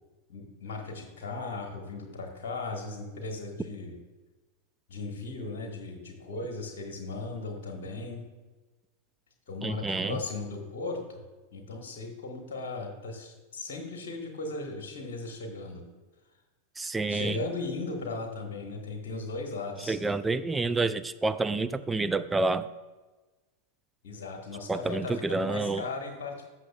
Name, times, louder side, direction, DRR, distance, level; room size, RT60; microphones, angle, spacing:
voice 1, 0.3-4.0 4.9-8.2 9.5-11.2 11.5-15.8 17.1-20.0 24.0-26.5, left 3 dB, 55° left, 2 dB, 1.3 m, -37 dB
voice 2, 9.6-10.1 16.8-17.4 19.9-22.7 24.7-25.8, right 3 dB, 10° right, 11 dB, 0.3 m, -28 dB
14.5 x 5.9 x 2.3 m, 1.2 s
figure-of-eight pair, 90°, 0 cm